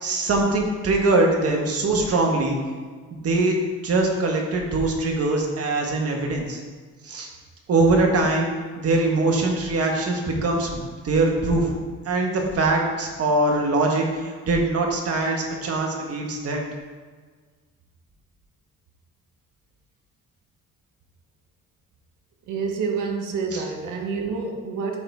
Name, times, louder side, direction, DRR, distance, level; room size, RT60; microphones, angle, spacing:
voice 1, 0.0-2.6 3.1-6.6 7.0-7.3 7.7-8.5 8.8-11.7 12.0-16.6 23.5-23.6, right 2 dB, 50° right, 0 dB, 1.6 m, -22 dB
voice 2, 22.5-25.0, right 5 dB, 85° right, 2 dB, 1.2 m, -28 dB
12.0 x 4.1 x 3.5 m, 1.5 s
cardioid pair, 90°, 30 cm